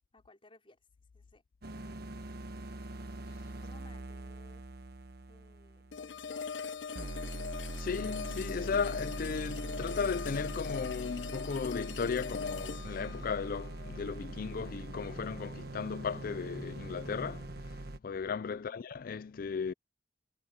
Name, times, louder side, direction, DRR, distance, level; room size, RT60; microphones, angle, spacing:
voice 1, 0.1-0.8 1.1-1.4 3.6-4.7 5.3-6.5 18.5-18.9, left 2 dB, 30° left, 5.2 m, -60 dB
sound 1, 1.6-6.6 7.0-18.0, right 1 dB, 60° right, 1.3 m, -43 dB
sound 2, 5.9-14.9, left 6 dB, 90° left, 0.8 m, -41 dB
voice 2, 7.8-17.5 18.0-19.7, left 5 dB, 50° left, 0.4 m, -36 dB
head